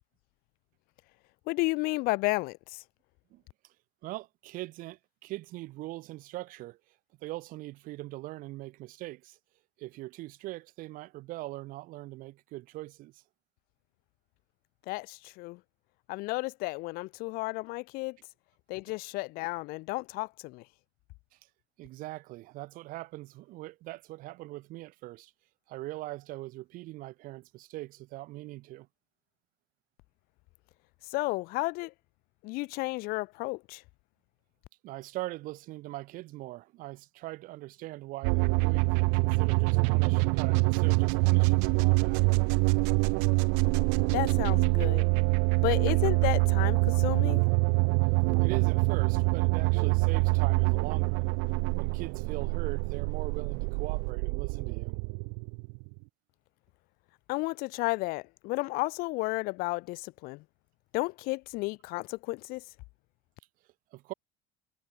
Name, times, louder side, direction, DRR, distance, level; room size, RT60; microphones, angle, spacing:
voice 1, 1.5-2.8 14.9-15.6 16.1-18.2 18.7-20.6 31.1-31.9 32.4-33.8 44.1-45.0 45.6-47.4 57.3-60.4 60.9-62.6, left 23 dB, 70° left, 5.2 m, -32 dB
voice 2, 4.0-6.8 7.2-9.4 9.8-13.2 21.8-25.3 25.7-28.9 34.8-42.5 48.4-51.3 51.8-55.0 63.9-64.1, right 18 dB, 60° right, 3.6 m, -41 dB
sound 1, 38.2-56.0, right 40 dB or more, 80° right, 1.2 m, -25 dB
cardioid pair, 135°, 16 cm